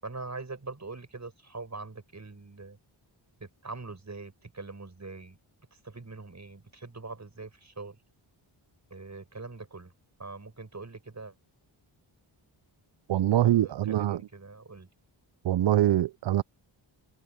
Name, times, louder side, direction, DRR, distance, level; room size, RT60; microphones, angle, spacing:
voice 1, 0.0-2.8 3.4-5.4 5.7-8.0 8.9-9.9 10.2-11.3 13.4-14.9, right 3 dB, 35° right, 6.6 m, -43 dB
voice 2, 13.1-14.2 15.4-16.4, right 13 dB, 60° right, 0.7 m, -24 dB
cardioid pair, 55°, 48 cm